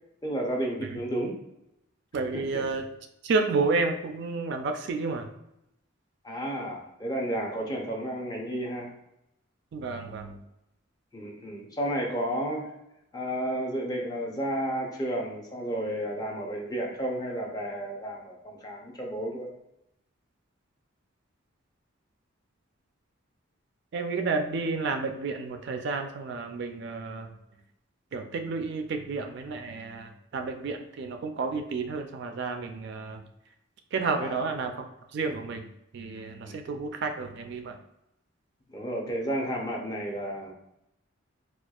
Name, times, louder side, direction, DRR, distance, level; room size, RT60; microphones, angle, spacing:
voice 1, 0.2-1.4 2.3-2.6 6.2-8.9 11.1-12.7 13.1-19.5 34.1-34.5 36.4-36.5 38.7-40.5, right 1 dB, 20° left, 0 dB, 0.5 m, -32 dB
voice 2, 2.1-2.8 3.2-5.3 9.7-10.4 23.9-27.3 28.1-33.2 33.9-34.7 35.1-35.6 35.9-37.7, right 4 dB, 55° right, 5 dB, 0.3 m, -31 dB
4.2 x 2.3 x 2.3 m, 0.84 s
head